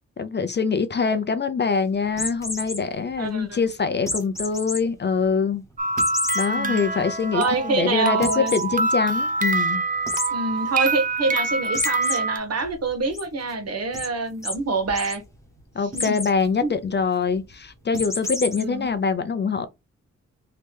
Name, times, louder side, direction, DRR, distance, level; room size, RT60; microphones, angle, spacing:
voice 1, 0.2-5.6 6.3-9.8 15.7-19.7, left 5 dB, 35° left, 0.5 m, -24 dB
sound 1, 2.1-2.8 4.1-4.8 5.2-5.3 6.0-6.5 7.0-7.1 7.3-7.4 8.2-8.7 10.1-10.3 11.7-12.2 12.6-13.2 13.9-14.1 14.4-14.6 14.8-15.2 15.9-16.3 17.9-18.6, left 2 dB, 10° left, 1.0 m, -29 dB
voice 2, 3.2-3.6 6.5-6.8 7.3-8.5 10.3-15.2 15.9-16.1 16.6-16.7 18.6-18.9, right 3 dB, 55° right, 1.0 m, -26 dB
sound 2, 5.8-12.4, right 3 dB, 25° right, 0.4 m, -25 dB
3.2 x 2.8 x 3.4 m
wide cardioid pair, 130°, 31 cm